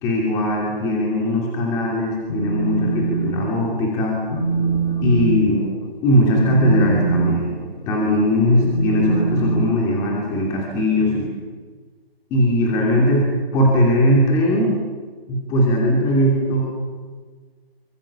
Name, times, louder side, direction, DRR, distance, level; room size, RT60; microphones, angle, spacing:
voice 1, 0.0-4.2 5.0-5.6 6.0-7.6 7.9-11.3 12.3-13.3 13.5-14.8 15.3-16.6, left 1 dB, 10° left, -2 dB, 2.8 m, -19 dB
Telephone, 2.1-3.3 3.6-3.9 4.3-10.4, right 4 dB, 45° left, 3.5 m, -24 dB
26.0 x 24.5 x 7.2 m, 1.4 s
figure-of-eight pair, 165°, 31 cm